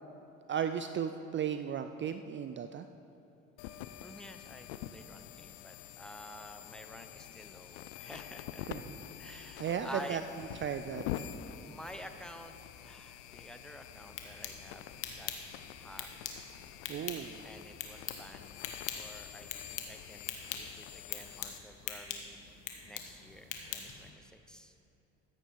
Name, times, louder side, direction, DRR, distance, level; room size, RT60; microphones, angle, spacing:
voice 1, 0.5-2.9 8.7-9.0 9.3-10.2 10.6-11.2 16.9-17.4, right 8 dB, 35° right, 9 dB, 0.5 m, -36 dB
sound 1, 3.6-21.6, left 11 dB, 90° left, 0.5 m, -46 dB
voice 2, 4.0-8.7 9.1-10.2 11.6-15.3 15.7-16.4 17.4-18.5 19.0-22.5 22.8-24.7, equal, ahead, 6 dB, 0.9 m, -50 dB
sound 2, 13.9-24.1, left 8 dB, 70° left, 1.4 m, -44 dB
14.0 x 8.9 x 4.7 m, 3.0 s
supercardioid pair, 75°, 33 cm